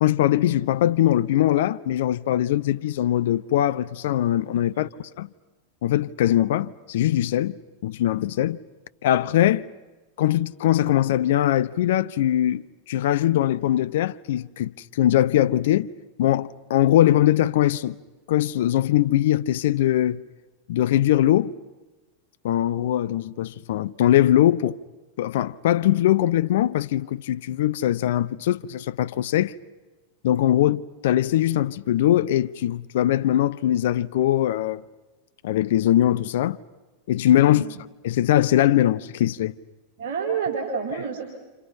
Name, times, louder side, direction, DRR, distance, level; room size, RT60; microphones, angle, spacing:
voice 1, 0.0-4.9 5.2-5.3 5.8-8.6 9.0-9.7 10.2-12.6 12.9-15.9 16.2-18.0 18.3-20.2 20.7-21.6 22.4-24.8 25.2-29.5 30.2-34.8 35.4-36.6 37.1-37.7 38.0-39.5, left 12 dB, 55° left, 0.7 m, -21 dB
voice 2, 37.5-37.8 40.0-41.2, right 6 dB, 50° right, 4.6 m, -29 dB
29.5 x 29.0 x 5.6 m
figure-of-eight pair, 90°, 0 cm